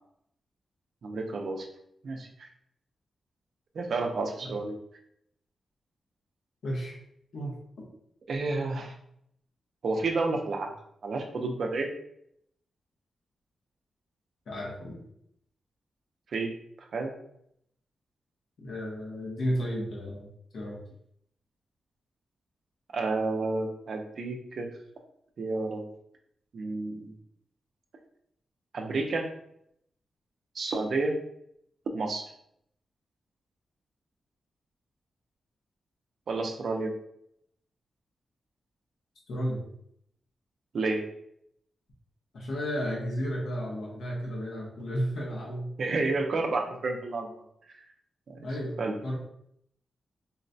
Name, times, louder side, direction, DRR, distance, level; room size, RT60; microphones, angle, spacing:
voice 1, 1.0-1.7 2.0-2.5 3.7-4.8 8.3-8.9 9.8-10.7 11.0-11.9 16.3-16.5 16.9-17.1 22.9-24.7 25.4-25.8 26.5-27.1 28.7-29.3 30.5-31.1 31.9-32.2 36.3-36.9 40.7-41.0 45.8-47.3 48.3-48.5 48.8-48.9, right 3 dB, 55° right, 2 dB, 0.5 m, -30 dB
voice 2, 6.6-7.0 7.3-7.9 14.5-15.0 18.6-20.3 20.5-20.8 39.3-39.6 42.3-45.7 48.4-49.2, equal, 70° left, -4 dB, 0.8 m, -33 dB
3.9 x 2.1 x 2.6 m, 0.73 s
wide cardioid pair, 165°, 0 cm